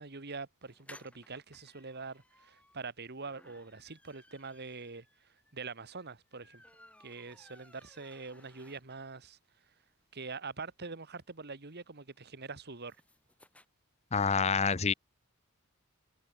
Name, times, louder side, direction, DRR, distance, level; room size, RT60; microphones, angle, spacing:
voice 1, 0.0-6.6 7.0-9.4 10.1-13.0, right 4 dB, 50° right, 1.7 m, -44 dB
sound 1, 0.6-9.2 9.6-9.7 9.9-10.0 10.3-13.7, left 1 dB, 5° left, 6.3 m, -60 dB
voice 2, 14.1-14.9, left 5 dB, 30° left, 0.8 m, -27 dB
head